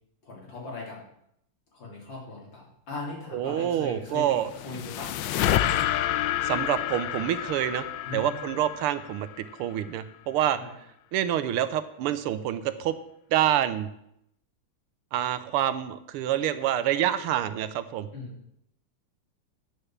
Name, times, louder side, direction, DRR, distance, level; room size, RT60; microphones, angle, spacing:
voice 1, 0.2-1.0 1.7-5.2 6.6-6.7 8.0-8.5 10.6-10.7 18.1-18.3, left 3 dB, 60° left, -2 dB, 3.7 m, -39 dB
voice 2, 3.3-4.5 6.4-10.6 11.1-13.0 13.3-13.9 15.1-18.1, right 11 dB, 85° right, 13 dB, 1.6 m, -27 dB
sound 1, 4.2-9.6, left 12 dB, 75° left, 1.1 m, -29 dB
9.6 x 6.6 x 7.3 m, 0.76 s
omnidirectional pair, 2.4 m